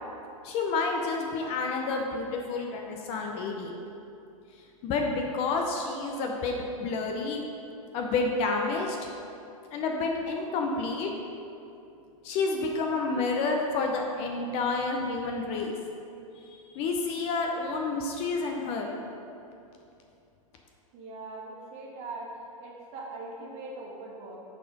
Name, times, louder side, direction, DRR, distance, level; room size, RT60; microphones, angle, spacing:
voice 1, 0.4-3.7 4.8-7.4 7.9-9.1 9.7-11.1 12.2-15.7 16.7-18.9, left 3 dB, 35° left, 2 dB, 0.7 m, -29 dB
voice 2, 20.9-24.4, right 2 dB, 35° right, -3 dB, 1.5 m, -41 dB
7.4 x 4.2 x 5.2 m, 2.6 s
hypercardioid pair, 135°, 19 cm